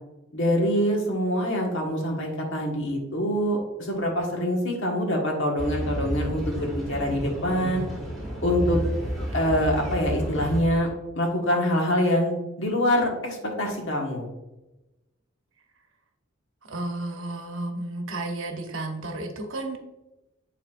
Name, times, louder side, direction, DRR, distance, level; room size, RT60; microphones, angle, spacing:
voice 1, 0.3-7.9 8.4-8.8 9.3-10.9 11.1-14.3, equal, 65° left, 0 dB, 1.5 m, -25 dB
sound 1, 5.6-10.6, equal, ahead, 1.7 m, -31 dB
voice 2, 16.7-19.8, right 2 dB, 65° right, 4 dB, 0.9 m, -32 dB
9.2 x 4.2 x 2.5 m, 0.99 s
head